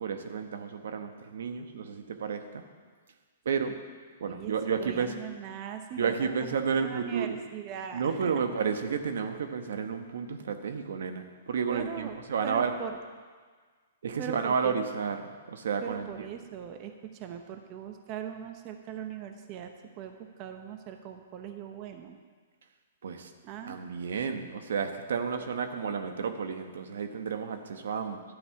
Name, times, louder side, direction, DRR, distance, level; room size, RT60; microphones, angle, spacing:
voice 1, 0.0-2.6 3.4-3.8 4.2-5.1 6.0-7.4 7.9-12.8 14.0-15.2 15.5-16.3 23.0-23.3 23.6-28.2, right 6 dB, 75° right, 7 dB, 1.0 m, -31 dB
voice 2, 4.2-4.5 4.8-8.4 11.7-12.2 12.4-12.9 14.2-14.9 15.8-22.2 23.4-23.8 25.4-25.5, right 9 dB, 35° right, 6 dB, 0.8 m, -40 dB
11.5 x 5.4 x 8.4 m, 1.6 s
hypercardioid pair, 145°, 0 cm